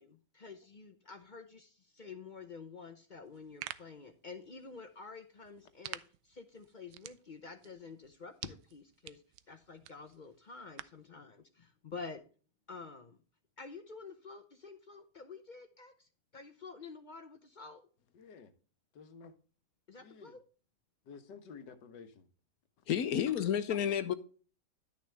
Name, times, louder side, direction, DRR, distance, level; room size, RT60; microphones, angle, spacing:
voice 1, 0.0-12.2 12.7-13.2 13.6-17.8 19.9-20.4 23.7-24.0, left 4 dB, 50° left, 0.5 m, -49 dB
sound 1, 3.3-11.1, right 14 dB, 85° right, 1.2 m, -51 dB
voice 2, 18.1-18.5 18.9-19.3 20.0-20.4 21.0-22.3, left 5 dB, 90° left, 1.7 m, -52 dB
voice 3, 22.9-24.1, left 9 dB, 65° left, 1.1 m, -30 dB
11.0 x 6.5 x 3.3 m
omnidirectional pair, 1.8 m